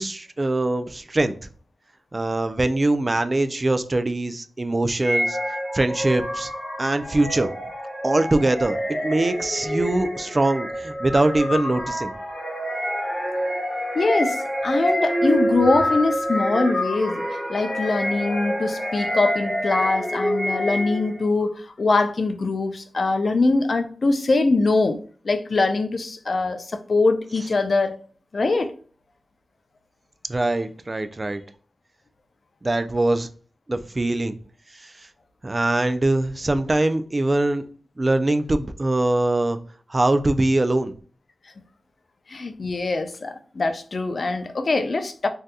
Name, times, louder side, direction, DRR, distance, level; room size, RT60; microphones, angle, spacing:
voice 1, 0.0-1.3 2.1-5.4 5.7-6.5 6.8-7.5 8.0-12.1 30.3-31.4 32.6-33.3 33.7-34.4 34.8-34.9 35.4-37.6 38.0-39.6 39.9-40.9, right 2 dB, 30° right, 0.3 m, -22 dB
sound 1, 5.0-21.2, equal, 10° right, 1.1 m, -27 dB
voice 2, 13.9-25.0 25.2-28.0 28.3-28.7 42.3-45.3, left 3 dB, 55° left, 0.4 m, -23 dB
2.7 x 2.2 x 3.4 m
wide cardioid pair, 75°, 0 cm